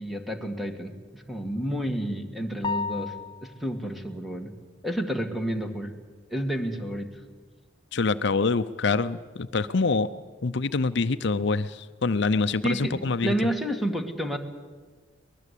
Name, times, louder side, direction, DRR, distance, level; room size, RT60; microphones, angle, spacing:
voice 1, 0.0-3.2 3.4-4.5 4.8-5.9 6.3-7.1 12.6-14.4, equal, ahead, 5 dB, 1.9 m, -30 dB
sound 1, 2.6-3.7, left 4 dB, 25° left, 0.7 m, -32 dB
voice 2, 7.9-10.1 10.4-13.3, left 4 dB, 65° left, 12 dB, 0.7 m, -25 dB
23.5 x 20.5 x 8.4 m, 1.4 s
head